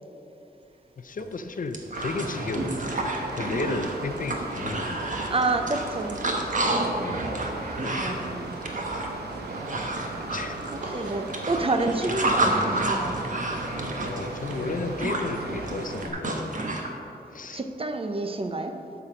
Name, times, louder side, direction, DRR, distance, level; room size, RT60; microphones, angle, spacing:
voice 1, 1.0-5.2 6.9-7.3 7.8-8.3 8.9-9.0 10.3-10.6 14.0-16.6 17.3-17.6, left 3 dB, 55° left, 8 dB, 0.6 m, -33 dB
sound 1, 1.2-1.3 1.6-16.9, right 2 dB, 50° right, 1.1 m, -30 dB
Mechanical fan, 1.9-16.1, right 2 dB, 80° right, 0.9 m, -37 dB
voice 2, 5.3-6.2 8.0-8.6 10.7-13.2 17.5-18.8, right 2 dB, 35° right, 6 dB, 0.7 m, -28 dB
12.5 x 5.8 x 5.0 m, 2.9 s
wide cardioid pair, 115°, 16 cm